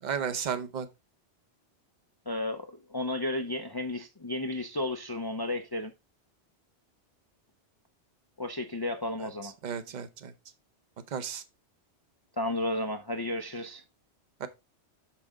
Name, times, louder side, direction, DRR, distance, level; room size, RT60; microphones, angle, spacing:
voice 1, 0.0-0.9 9.2-9.3 9.6-10.3 11.1-11.4 14.4-14.5, right 7 dB, 45° right, 0.8 m, -33 dB
voice 2, 2.3-5.9 8.4-9.5 12.4-13.8, left 1 dB, 30° left, 0.4 m, -33 dB
6.2 x 5.9 x 3.6 m
omnidirectional pair, 1.2 m